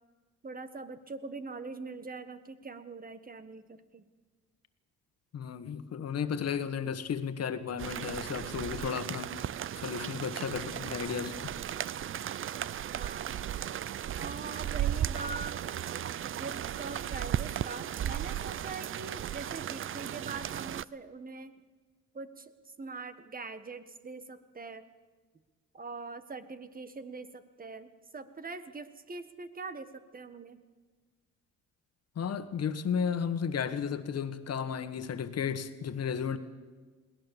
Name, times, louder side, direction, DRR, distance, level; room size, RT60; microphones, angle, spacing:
voice 1, 0.4-4.0 12.9-13.4 14.2-15.6 16.2-21.5 22.1-22.5 22.8-24.9 25.7-30.6, right 3 dB, 30° right, 11 dB, 1.5 m, -43 dB
voice 2, 5.3-9.4 9.8-11.5 32.1-36.4, left 7 dB, 55° left, 10 dB, 1.7 m, -34 dB
sound 1, 7.8-20.9, right 10 dB, 45° right, 0.5 m, -35 dB
21.5 x 18.5 x 7.2 m, 1.4 s
cardioid pair, 90°, 30 cm